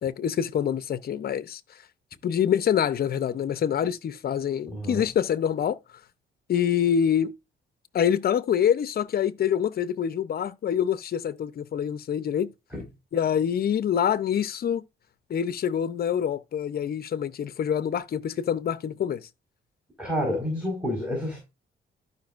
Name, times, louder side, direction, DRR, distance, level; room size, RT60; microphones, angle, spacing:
voice 1, 0.0-1.6 2.2-5.8 6.5-7.3 7.9-12.5 13.1-14.8 15.3-19.3, left 9 dB, 50° left, 0.7 m, -26 dB
voice 2, 4.7-5.0 12.7-12.8 20.0-21.4, left 1 dB, 5° right, 4.5 m, -29 dB
13.0 x 5.3 x 2.5 m
cardioid pair, 90°, 20 cm